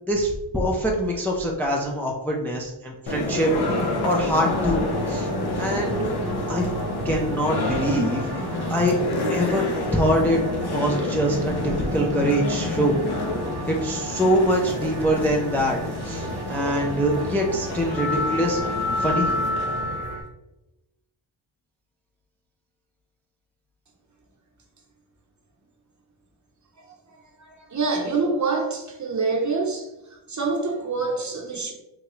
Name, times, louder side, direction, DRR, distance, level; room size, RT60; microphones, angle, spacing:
voice 1, 0.1-3.5 3.8-5.3 5.6-6.1 6.5-6.7 7.0-8.9 9.3-9.6 9.9-13.0 13.7-15.8 16.0-18.6 19.0-19.3, equal, 5° left, 0.5 m, -24 dB
sound 1, 3.1-20.2, left 2 dB, 55° left, 0.8 m, -28 dB
sound 2, 4.4-20.2, right 3 dB, 80° right, 0.6 m, -36 dB
voice 2, 27.1-31.7, right 3 dB, 35° right, 0.9 m, -26 dB
3.9 x 2.3 x 3.0 m
cardioid pair, 55°, 47 cm